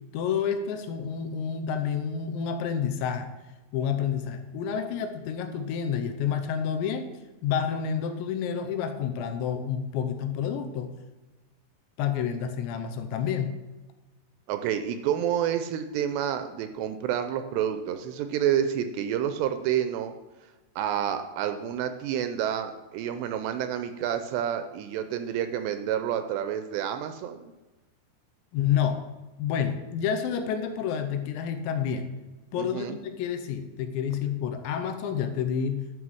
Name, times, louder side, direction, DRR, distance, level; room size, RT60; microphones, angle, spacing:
voice 1, 0.1-3.3 3.7-7.1 7.4-10.9 12.0-13.5 28.5-29.0 29.4-32.1 32.5-35.8, left 7 dB, 80° left, 7 dB, 3.1 m, -29 dB
voice 2, 14.5-20.1 20.8-27.5 32.6-32.9, right 9 dB, 80° right, 8 dB, 2.6 m, -29 dB
11.0 x 5.8 x 6.3 m, 1.1 s
omnidirectional pair, 5.3 m